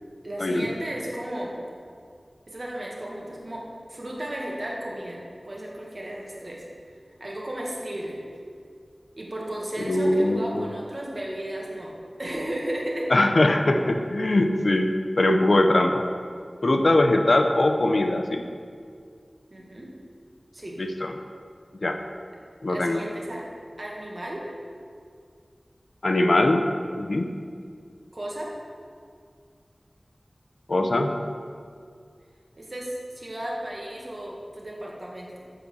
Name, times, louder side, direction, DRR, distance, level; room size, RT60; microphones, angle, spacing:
voice 1, 0.2-1.6 2.5-3.6 3.9-6.6 7.2-8.2 9.2-13.1 19.5-19.9 20.5-20.8 22.7-23.5 23.8-24.4 28.1-28.5 32.6-35.4, right 1 dB, 50° right, -3 dB, 1.9 m, -34 dB
voice 2, 9.9-10.7 13.1-16.0 16.6-18.4 20.8-21.1 21.8-22.0 22.6-23.0 26.0-26.6 27.0-27.3 30.7-31.1, left 1 dB, 70° left, 5 dB, 0.7 m, -21 dB
7.6 x 6.9 x 6.3 m, 2.2 s
wide cardioid pair, 60°, 0 cm